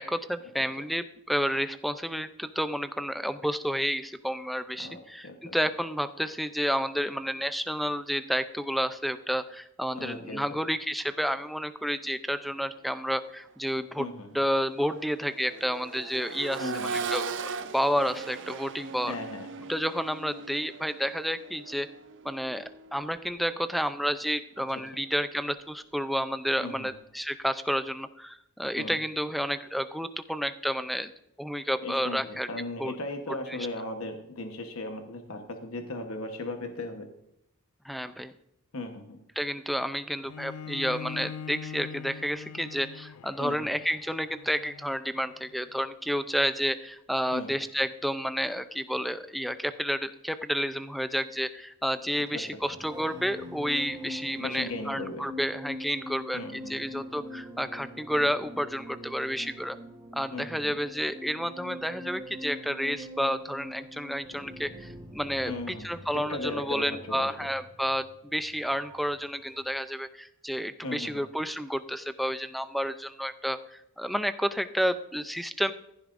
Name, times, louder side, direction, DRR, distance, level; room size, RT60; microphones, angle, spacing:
voice 1, 0.0-14.1 14.3-19.1 19.7-21.9 22.2-31.1 31.4-32.5 32.8-32.9 37.8-38.3 39.4-59.8 60.1-75.7, equal, ahead, 11 dB, 0.4 m, -30 dB
voice 2, 4.8-5.5 9.9-10.6 14.0-14.3 16.6-17.0 19.1-19.7 26.6-26.9 28.7-29.0 31.8-37.1 38.7-39.2 43.4-43.7 47.3-47.6 52.1-52.4 54.4-55.2 56.3-56.8 60.3-60.7 65.5-67.3 70.8-71.2, left 2 dB, 65° left, 5 dB, 1.2 m, -37 dB
Accelerating revving vroom, 13.2-13.4 13.8-23.7 25.4-25.5, right 5 dB, 55° right, 0.7 m, -39 dB
Bowed string instrument, 40.2-45.5, left 7 dB, 85° left, 0.3 m, -42 dB
sound 1, 52.5-69.2 69.4-69.8, left 1 dB, 20° right, 1.5 m, -44 dB
15.0 x 11.5 x 2.6 m, 0.82 s
head